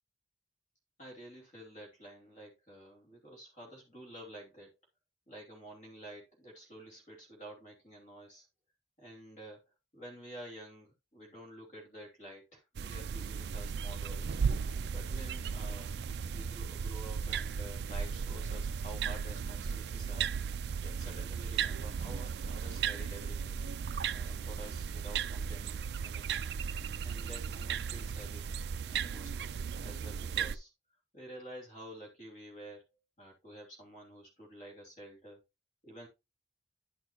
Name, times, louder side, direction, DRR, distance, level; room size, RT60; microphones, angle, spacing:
voice 1, 1.0-4.7 5.3-8.5 9.0-9.6 9.9-14.4 14.9-16.0 16.3-20.3 20.8-23.6 24.1-26.5 27.0-28.5 28.9-29.5 29.8-30.7 31.1-32.9 33.2-35.4 35.8-36.1, right 1 dB, 40° left, 2.9 m, -50 dB
sound 1, 12.8-30.6, right 6 dB, 65° right, 0.4 m, -36 dB
10.5 x 6.1 x 3.0 m
head